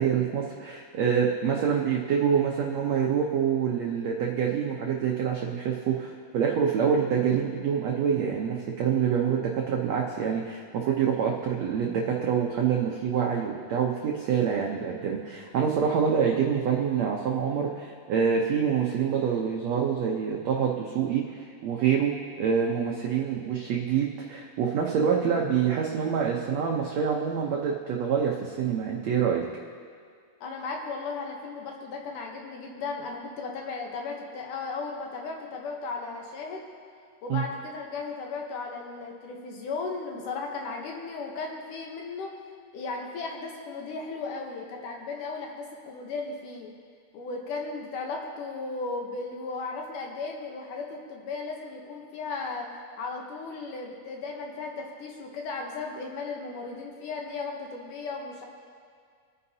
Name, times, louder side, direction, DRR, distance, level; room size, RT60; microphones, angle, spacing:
voice 1, 0.0-29.4 37.3-37.4, right 7 dB, 85° right, -1 dB, 1.5 m, -26 dB
voice 2, 30.4-36.6 37.2-42.3 42.7-46.7 47.1-52.7 53.0-58.5, left 4 dB, 70° left, 1 dB, 2.3 m, -36 dB
26.0 x 9.6 x 2.8 m, 2.1 s
omnidirectional pair, 4.3 m